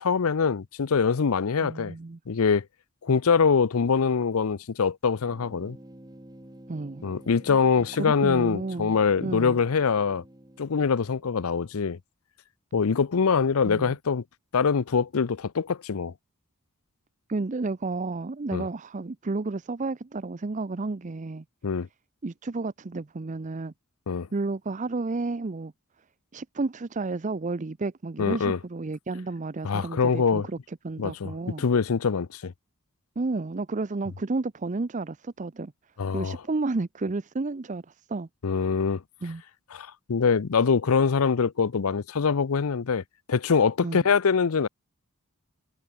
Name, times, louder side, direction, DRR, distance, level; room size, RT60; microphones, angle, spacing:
voice 1, 0.0-1.9 2.3-2.7 3.0-5.8 7.0-10.2 10.6-12.0 12.7-14.2 14.5-16.1 18.5-18.7 21.6-21.9 24.1-24.3 28.2-28.6 29.6-30.5 31.0-32.5 36.0-36.4 38.4-39.0 39.7-43.0 43.3-44.7, left 5 dB, 80° left, 0.6 m, -24 dB
voice 2, 1.6-2.2 6.7-7.0 7.5-7.6 8.0-9.6 13.6-14.0 17.3-21.4 22.2-23.7 24.3-25.7 26.3-31.6 33.2-35.7 36.1-38.3 39.2-39.4 43.8-44.0, right 3 dB, 35° right, 0.5 m, -31 dB
sound 1, 5.2-11.8, right 1 dB, 20° right, 1.7 m, -49 dB
head